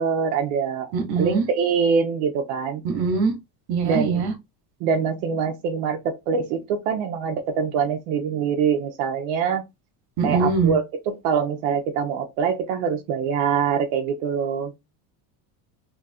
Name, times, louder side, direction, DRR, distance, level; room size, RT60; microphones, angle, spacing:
voice 1, 0.0-2.8 3.8-4.3 4.8-9.6 10.2-14.7, right 6 dB, 80° right, 0.8 m, -24 dB
voice 2, 0.9-1.4 2.8-3.3 3.7-4.3 10.2-10.7, right 4 dB, 50° right, 1.2 m, -22 dB
2.9 x 2.4 x 4.1 m
cardioid pair, 125°, 47 cm